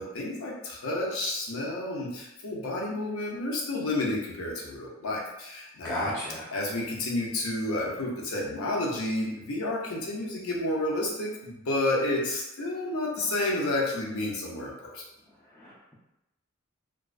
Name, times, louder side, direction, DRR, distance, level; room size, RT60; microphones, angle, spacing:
voice 1, 0.0-6.2 6.5-15.0, left 2 dB, 90° left, -3 dB, 0.6 m, -30 dB
voice 2, 5.8-6.5 15.6-16.0, equal, 10° left, -8 dB, 0.3 m, -33 dB
2.3 x 2.2 x 2.4 m, 0.92 s
head